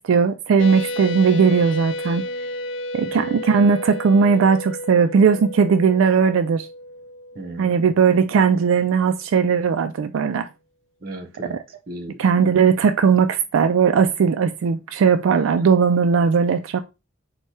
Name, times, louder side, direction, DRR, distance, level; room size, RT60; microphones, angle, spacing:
voice 1, 0.1-2.2 2.9-6.7 7.6-10.5 12.2-16.8, right 6 dB, 80° right, 0.3 m, -18 dB
sound 1, 0.6-8.6, left 1 dB, 80° left, 0.4 m, -32 dB
voice 2, 7.3-7.9 11.0-12.5 15.3-15.5, right 2 dB, 45° right, 0.8 m, -37 dB
4.2 x 2.3 x 4.6 m
head